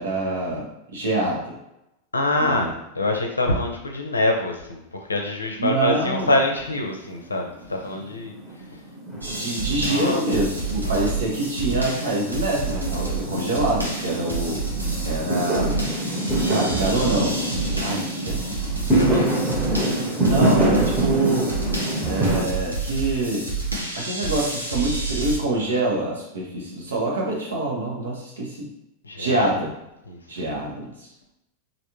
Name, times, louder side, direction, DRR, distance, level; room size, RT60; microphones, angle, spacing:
voice 1, 0.0-1.6 2.4-2.7 5.6-6.3 9.3-14.7 15.0-15.8 16.4-18.7 19.0-19.1 20.1-21.6 22.0-23.5 23.9-28.7 29.2-29.7 30.3-30.9, right 2 dB, 65° right, -1 dB, 0.9 m, -26 dB
voice 2, 2.1-8.4 8.7-8.8 9.8-10.2 10.8-11.1 18.9-19.4 29.0-29.5 30.1-30.2, left 2 dB, 80° left, 2 dB, 0.5 m, -25 dB
Fireworks, 5.9-6.9 7.1-22.4, right 1 dB, 15° right, 1.1 m, -26 dB
sound 1, 9.2-25.4, right 3 dB, 90° right, 0.8 m, -29 dB
sound 2, 16.7-18.0 18.5-19.1 20.0-20.1 21.4-21.5 22.0-23.3 23.9-24.4, right 7 dB, 35° right, 0.6 m, -40 dB
3.3 x 2.5 x 2.9 m, 0.86 s
figure-of-eight pair, 90°, 0 cm